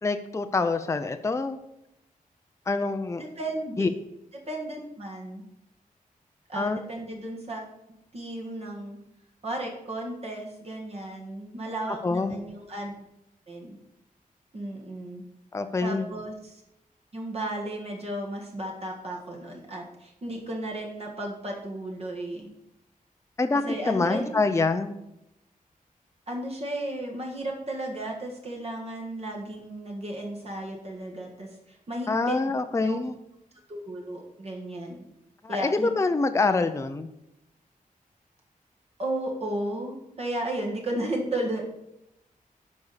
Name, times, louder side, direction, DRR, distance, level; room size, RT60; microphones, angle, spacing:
voice 1, 0.0-1.6 2.7-3.2 3.8-3.9 6.5-6.8 11.9-12.4 15.5-16.1 23.4-25.0 32.1-33.2 35.4-37.1, left 3 dB, 20° left, 8 dB, 0.5 m, -26 dB
voice 2, 3.2-3.9 4.5-5.4 6.5-7.6 8.1-9.0 9.4-13.0 13.5-13.8 14.5-15.2 15.8-16.6 17.1-22.5 23.6-24.3 26.3-32.4 32.8-33.1 33.7-35.1 35.5-35.9 39.0-41.7, right 1 dB, 45° right, 0 dB, 1.6 m, -34 dB
11.5 x 4.2 x 6.7 m, 0.85 s
wide cardioid pair, 180°, 15 cm